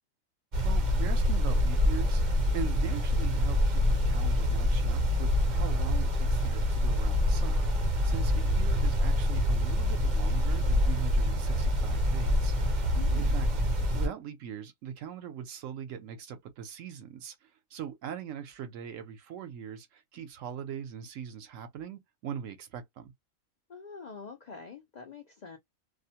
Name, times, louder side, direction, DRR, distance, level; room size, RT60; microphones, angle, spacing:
sound 1, 0.5-14.1, left 1 dB, 45° right, 0.6 m, -26 dB
voice 1, 0.6-2.2 2.5-7.7 8.0-12.5 13.1-13.5 13.9-17.4 17.7-23.1, right 8 dB, 75° right, 1.0 m, -41 dB
voice 2, 12.9-13.3 23.7-25.6, left 5 dB, 70° left, 0.4 m, -45 dB
2.5 x 2.1 x 2.8 m
omnidirectional pair, 1.4 m